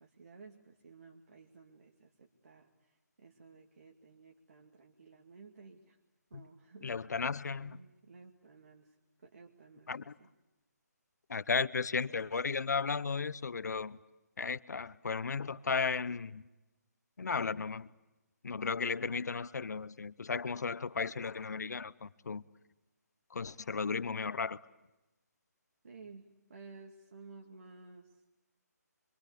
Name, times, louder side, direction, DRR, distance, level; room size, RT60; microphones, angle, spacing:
voice 1, 0.0-6.0 6.3-7.1 7.6-9.0 9.2-9.9 10.2-10.3 25.8-28.2, right 4 dB, 60° right, 2.2 m, -55 dB
voice 2, 6.8-7.8 9.9-10.1 11.3-14.0 14.4-16.4 17.2-17.9 18.4-22.4 23.3-24.6, left 5 dB, 75° left, 0.8 m, -35 dB
26.0 x 24.5 x 8.4 m
hypercardioid pair, 170°, 9 cm